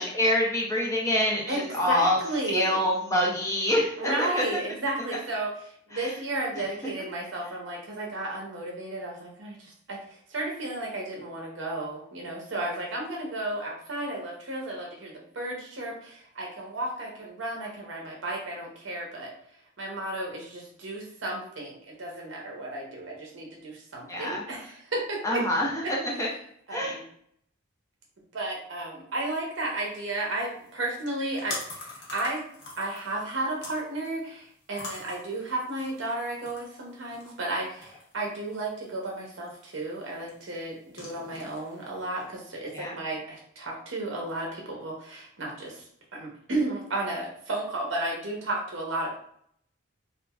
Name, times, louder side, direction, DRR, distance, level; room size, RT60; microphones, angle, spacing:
voice 1, 0.0-2.2 2.5-4.5 5.9-6.1 6.5-6.6 24.1-24.4 25.2-26.3 26.7-27.0 42.7-43.0, left 1 dB, 15° left, -3 dB, 0.4 m, -26 dB
voice 2, 1.5-2.8 4.0-5.5 5.9-19.3 19.8-25.4 25.8-25.9 26.7-27.0 28.3-32.4 32.8-45.8 46.1-49.1, right 2 dB, 65° right, -1 dB, 0.6 m, -33 dB
sound 1, 29.6-42.3, left 2 dB, 55° left, 0.8 m, -45 dB
2.8 x 2.4 x 2.3 m, 0.66 s
head